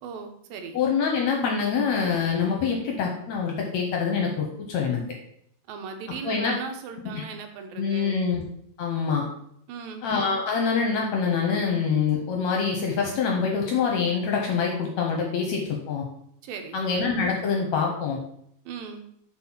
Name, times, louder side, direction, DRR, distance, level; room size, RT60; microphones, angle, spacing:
voice 1, 0.0-0.8 5.7-8.2 9.7-10.1 16.4-16.8 18.7-19.0, right 6 dB, 80° right, 5 dB, 2.6 m, -38 dB
voice 2, 0.7-5.0 6.2-6.6 7.1-7.2 7.8-8.4 8.8-9.2 10.0-16.1 16.7-18.2, left 5 dB, 70° left, 1 dB, 1.8 m, -25 dB
6.7 x 4.5 x 5.7 m, 0.70 s
omnidirectional pair, 4.0 m